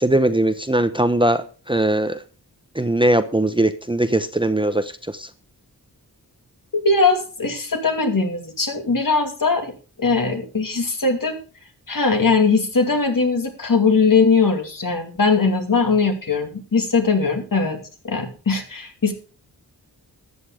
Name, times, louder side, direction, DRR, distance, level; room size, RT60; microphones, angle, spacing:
voice 1, 0.0-2.2 2.7-5.3, right 1 dB, 15° right, 10 dB, 0.8 m, -20 dB
voice 2, 6.7-9.7 10.0-11.4 11.9-17.8 18.0-19.1, left 4 dB, 55° left, 5 dB, 2.6 m, -20 dB
13.5 x 8.6 x 4.9 m, 0.38 s
wide cardioid pair, 70°, 39 cm